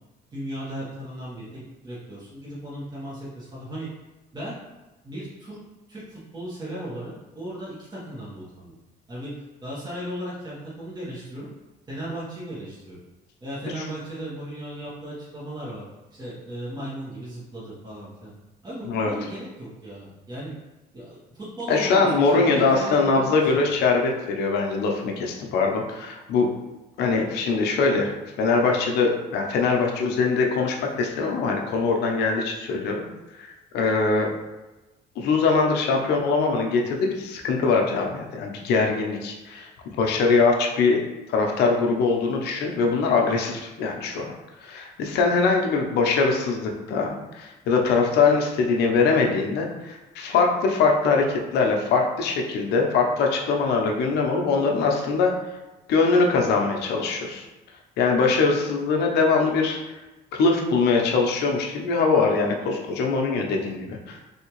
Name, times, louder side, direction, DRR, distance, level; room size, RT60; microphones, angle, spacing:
voice 1, 0.3-3.9 4.3-4.6 5.0-5.6 5.9-8.8 9.1-11.5 11.9-13.0 13.4-15.9 16.1-18.3 18.6-20.5 20.9-23.8, right 1 dB, 25° right, -8 dB, 1.1 m, -36 dB
voice 2, 21.7-26.5 27.0-33.0 33.4-34.3 35.2-39.7 40.0-41.0 41.3-44.3 44.6-55.3 55.9-57.5 58.0-59.9 60.3-64.3, left 4 dB, 75° left, 1 dB, 0.6 m, -22 dB
3.5 x 2.7 x 3.0 m, 1.1 s
cardioid pair, 110°, 17 cm